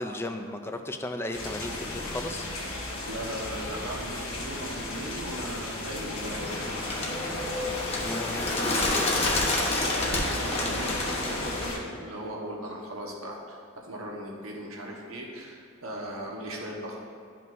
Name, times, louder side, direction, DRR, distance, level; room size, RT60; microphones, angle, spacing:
voice 1, 0.0-2.5 8.0-9.1, left 1 dB, 10° left, 6 dB, 0.4 m, -35 dB
sound 1, 1.3-11.8, left 2 dB, 80° left, 1.6 m, -35 dB
voice 2, 3.0-6.8 9.5-17.0, right 1 dB, 85° right, -1 dB, 1.3 m, -38 dB
Bird, 6.4-11.7, left 2 dB, 30° left, 1.1 m, -29 dB
12.0 x 5.4 x 2.6 m, 2.4 s
head